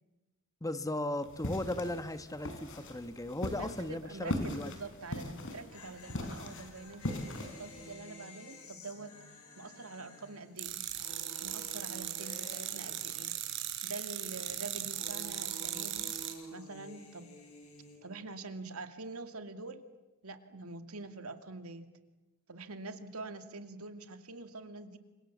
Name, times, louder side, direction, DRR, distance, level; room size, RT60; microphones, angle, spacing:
voice 1, 0.6-4.7, left 1 dB, 15° left, 11 dB, 1.1 m, -37 dB
sound 1, 1.2-7.9, left 1 dB, 65° left, 4.8 m, -40 dB
sound 2, 2.0-2.3 2.6-2.7 5.3-13.7 13.9-18.0, equal, 80° left, 7.3 m, -52 dB
voice 2, 3.6-9.1 9.6-10.8 11.4-13.4 13.8-16.2 16.5-17.4 18.0-19.8 20.2-21.9 22.5-25.0, right 3 dB, 80° right, 8 dB, 2.4 m, -45 dB
sound 3, 10.6-16.3, right 11 dB, 60° right, 5.2 m, -38 dB
30.0 x 25.5 x 7.4 m, 1.1 s
head